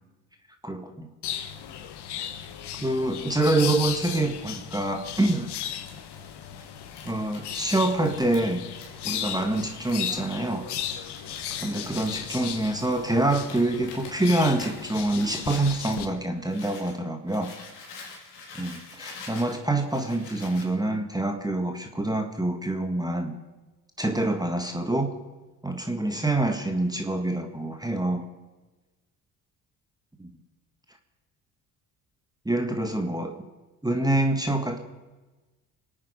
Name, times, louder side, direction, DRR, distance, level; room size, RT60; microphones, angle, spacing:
voice 1, 0.6-1.1 2.8-5.5 7.0-8.6 9.0-10.7 11.6-17.5 18.6-23.4 24.0-25.1 25.6-28.3 30.2-30.3 32.5-33.4 33.8-34.8, right 2 dB, 10° right, 5 dB, 1.8 m, -26 dB
sound 1, 1.2-16.1, left 9 dB, 55° left, 1.4 m, -36 dB
Crumpling crinkling, 5.4-17.0 17.3-20.7, left 4 dB, 80° left, 3.3 m, -46 dB
25.5 x 9.0 x 5.2 m, 1.2 s
hypercardioid pair, 55°, 47 cm